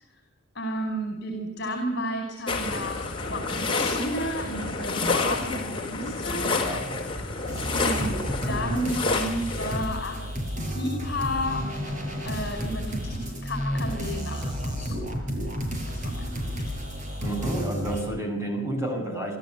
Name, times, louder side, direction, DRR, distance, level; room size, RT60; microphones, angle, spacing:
voice 1, 0.5-6.6 7.7-10.3 10.7-11.8 12.2-15.1 15.9-16.8, equal, 50° left, 4 dB, 5.1 m, -32 dB
sound 1, 2.5-9.8, left 3 dB, 25° left, 4.9 m, -29 dB
voice 2, 6.6-6.9 17.2-19.4, right 1 dB, 15° right, 2 dB, 7.5 m, -30 dB
sound 2, 7.5-18.0, equal, 35° right, 6.2 m, -31 dB
28.0 x 13.5 x 9.3 m, 0.80 s
head